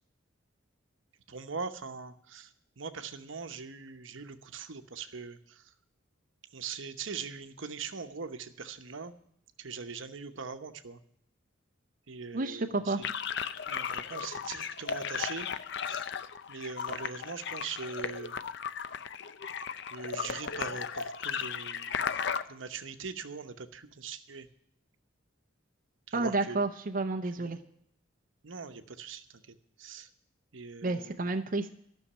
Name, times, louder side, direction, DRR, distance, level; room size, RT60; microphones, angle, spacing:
voice 1, 1.3-2.5 2.8-5.4 6.5-9.1 9.6-11.0 12.1-13.1 13.7-15.5 15.9-16.1 16.5-18.3 19.9-22.0 22.5-24.5 26.1-26.6 27.4-27.6 28.4-29.3 29.8-30.1 30.5-31.2, right 5 dB, 70° right, 8 dB, 0.9 m, -41 dB
voice 2, 12.3-13.0 26.1-27.6 30.8-31.7, right 2 dB, 45° right, 5 dB, 0.7 m, -30 dB
sound 1, 13.0-22.4, left 7 dB, 60° left, 0.6 m, -36 dB
13.0 x 6.5 x 9.9 m, 0.71 s
head